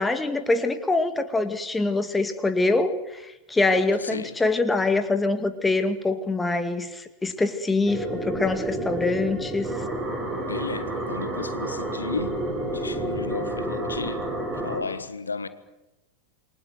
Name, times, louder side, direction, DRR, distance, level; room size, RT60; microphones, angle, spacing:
voice 1, 0.0-9.7, left 3 dB, 10° left, 2.2 m, -24 dB
voice 2, 3.7-4.4 10.4-12.4 12.7-14.3 14.6-15.5, left 4 dB, 75° left, 1.5 m, -34 dB
sound 1, 7.9-14.8, right 1 dB, 20° right, 7.7 m, -30 dB
28.0 x 23.0 x 8.0 m
figure-of-eight pair, 90°, 0 cm